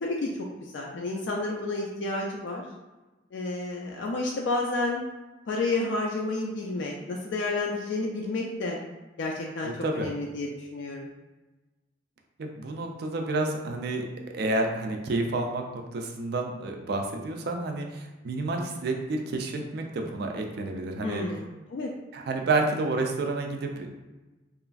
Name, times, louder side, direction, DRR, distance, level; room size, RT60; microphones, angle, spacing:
voice 1, 0.0-2.6 3.3-5.0 5.5-8.8 9.2-11.1 21.0-21.9, left 2 dB, 70° left, -1 dB, 0.3 m, -30 dB
voice 2, 9.6-10.1 12.4-14.1 14.3-21.2 22.1-23.9, right 2 dB, 55° right, 3 dB, 0.3 m, -30 dB
3.0 x 2.5 x 2.3 m, 1.1 s
head